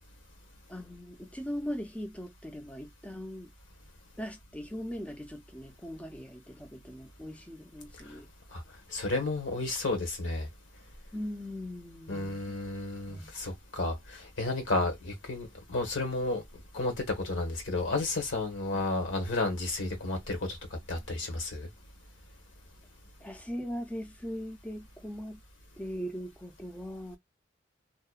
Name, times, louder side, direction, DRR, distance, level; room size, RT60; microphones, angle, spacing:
voice 1, 0.7-3.5 4.2-8.3 11.1-12.4 13.1-13.3 23.2-25.4 25.8-27.2, equal, 5° left, 0.4 m, -40 dB
voice 2, 8.9-10.5 12.1-16.4 16.7-20.6 20.9-21.7, left 2 dB, 80° left, 1.1 m, -32 dB
2.8 x 2.2 x 2.3 m
head